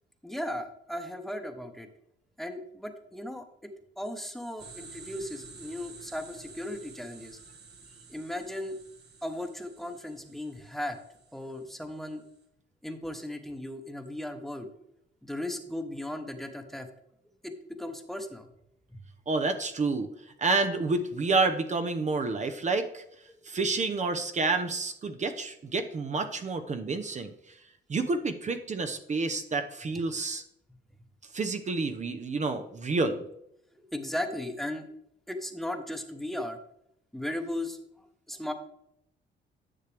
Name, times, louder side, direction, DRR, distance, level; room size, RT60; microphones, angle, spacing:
voice 1, 0.2-1.9 2.4-3.7 4.0-7.4 8.1-8.8 9.2-11.0 11.3-12.2 12.8-14.7 15.2-16.9 17.4-18.5 33.8-34.9 35.3-36.6 37.1-37.8 38.3-38.5, left 1 dB, ahead, 6 dB, 1.1 m, -36 dB
sound 1, 4.6-12.3, right 4 dB, 55° right, 1.7 m, -51 dB
voice 2, 19.3-20.1 20.4-23.0 23.4-27.6 27.9-30.4 31.3-33.3, right 3 dB, 35° right, 8 dB, 0.8 m, -29 dB
10.0 x 6.6 x 3.4 m, 0.76 s
cardioid pair, 90°, 20 cm